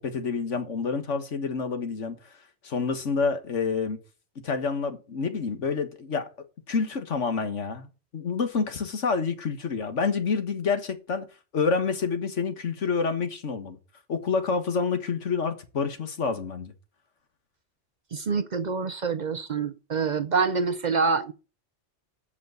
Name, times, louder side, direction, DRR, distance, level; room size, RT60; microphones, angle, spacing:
voice 1, 0.0-2.2 2.6-4.0 4.4-6.3 6.7-7.9 8.1-11.3 11.5-13.8 14.1-16.7, left 5 dB, 90° left, 1.8 m, -28 dB
voice 2, 18.1-21.3, right 5 dB, 45° right, 0.7 m, -26 dB
8.1 x 6.3 x 7.9 m
omnidirectional pair, 1.2 m